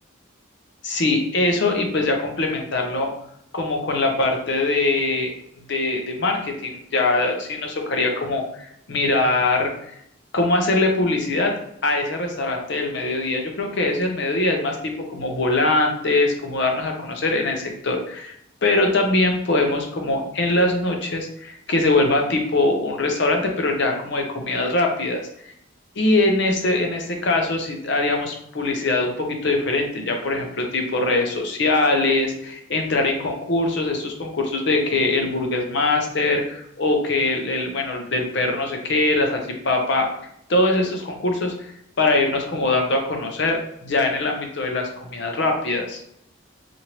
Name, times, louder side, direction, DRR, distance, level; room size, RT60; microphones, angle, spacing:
voice 1, 0.8-3.1 3.5-5.3 5.7-9.7 10.3-11.5 11.8-18.3 18.6-25.2 26.0-40.1 40.5-41.7 42.0-46.0, left 2 dB, 55° left, 2 dB, 0.6 m, -22 dB
2.9 x 2.6 x 2.9 m, 0.74 s
head